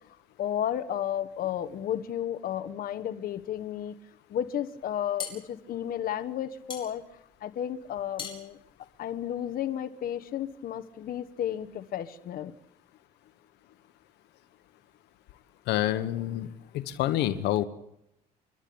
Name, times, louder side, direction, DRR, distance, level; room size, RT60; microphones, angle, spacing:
voice 1, 0.4-4.0 4.3-7.0 7.4-8.6 9.0-12.5, left 10 dB, 60° left, 11 dB, 1.3 m, -32 dB
sound 1, 4.8-9.8, left 6 dB, 30° left, 6.9 m, -43 dB
voice 2, 15.7-16.5 16.7-17.6, left 13 dB, 85° left, 11 dB, 1.2 m, -27 dB
29.5 x 12.0 x 8.7 m, 0.82 s
cardioid pair, 110°, 17 cm